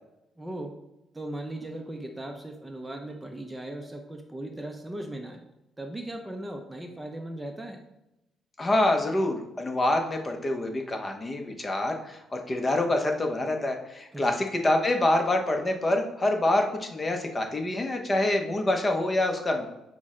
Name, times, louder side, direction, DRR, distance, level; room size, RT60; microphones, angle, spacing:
voice 1, 0.4-0.8 1.1-5.4 5.8-7.8 14.1-14.3, right 1 dB, 15° right, 4 dB, 0.5 m, -38 dB
voice 2, 8.6-19.7, left 1 dB, 25° left, 3 dB, 0.7 m, -26 dB
5.9 x 2.1 x 3.6 m, 0.91 s
cardioid pair, 90°, 0 cm